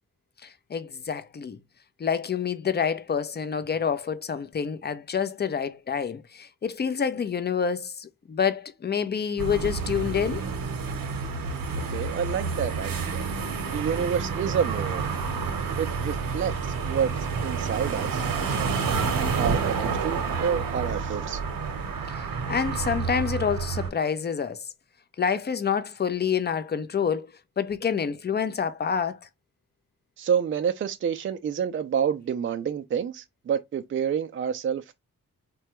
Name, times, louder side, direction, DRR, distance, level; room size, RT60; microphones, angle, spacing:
voice 1, 0.4-1.6 2.0-10.4 22.1-24.7 25.2-29.2, left 7 dB, 30° left, 0.5 m, -28 dB
sound 1, 9.4-23.9, right 5 dB, 80° right, 0.8 m, -29 dB
voice 2, 11.9-13.2 13.7-15.0 15.8-18.8 19.4-21.4 30.2-34.9, right 7 dB, 40° right, 0.4 m, -29 dB
3.2 x 2.3 x 2.9 m
cardioid pair, 60°, 34 cm